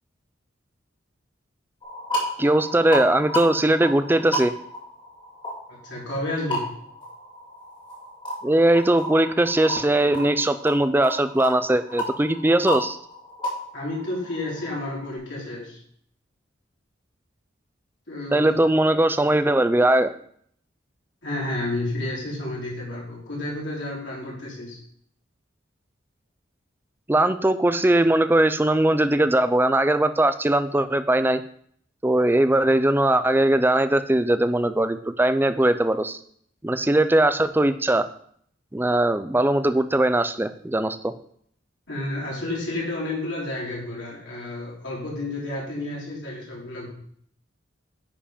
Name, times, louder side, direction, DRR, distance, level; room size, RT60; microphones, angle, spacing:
sound 1, 1.8-15.1, equal, 25° left, 2.3 m, -33 dB
voice 1, 2.4-4.5 8.4-13.0 18.3-20.1 27.1-31.4 32.0-36.2 36.6-38.1 38.7-41.1, right 1 dB, 10° right, 11 dB, 0.4 m, -20 dB
voice 2, 5.7-6.7 13.7-15.8 18.1-18.5 18.8-19.0 21.2-24.8 41.9-46.9, left 2 dB, 65° left, -5 dB, 3.5 m, -31 dB
10.0 x 5.1 x 5.1 m, 0.63 s
head